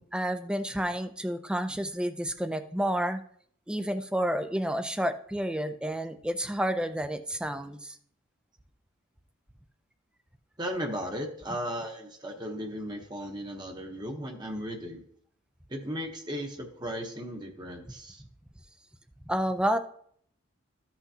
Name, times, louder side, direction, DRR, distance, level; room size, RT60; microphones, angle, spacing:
voice 1, 0.0-3.2 3.7-8.0 19.3-19.8, equal, 5° right, 9 dB, 0.4 m, -30 dB
voice 2, 10.6-15.0 15.7-18.2, equal, 20° right, 2 dB, 0.9 m, -36 dB
14.0 x 5.9 x 2.8 m, 0.64 s
head